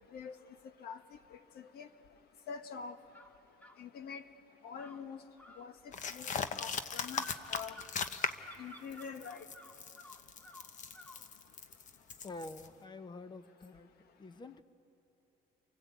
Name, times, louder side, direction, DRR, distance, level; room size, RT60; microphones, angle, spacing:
voice 1, 2.5-2.9 3.8-4.2 4.6-5.2 5.6-5.7 6.1-6.3 6.6-7.7 8.6-9.4, left 6 dB, 70° left, 8 dB, 1.6 m, -44 dB
sound 1, 3.1-3.8 4.8-11.3, left 1 dB, 10° left, 1.2 m, -54 dB
sound 2, 5.9-8.6 8.9-12.7, left 6 dB, 50° left, 1.1 m, -39 dB
voice 2, 12.2-13.9 14.2-14.6, left 2 dB, 25° left, 11 dB, 1.1 m, -47 dB
30.0 x 23.5 x 8.5 m, 2.9 s
cardioid pair, 110°, 17 cm